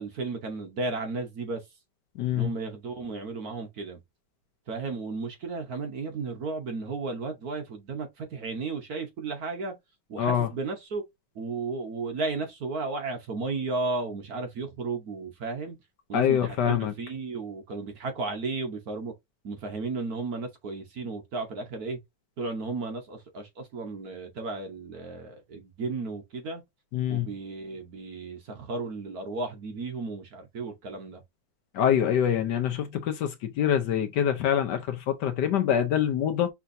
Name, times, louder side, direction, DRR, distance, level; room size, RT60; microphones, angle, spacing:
voice 1, 0.0-1.6 2.3-4.0 4.7-9.7 10.1-11.0 11.3-15.8 16.1-19.1 19.4-22.0 22.4-26.6 27.1-31.2, right 3 dB, 55° right, 1.2 m, -34 dB
voice 2, 2.2-2.5 10.2-10.5 16.1-16.9 26.9-27.3 31.7-36.5, left 9 dB, 65° left, 1.2 m, -25 dB
5.7 x 3.4 x 2.6 m
omnidirectional pair, 2.2 m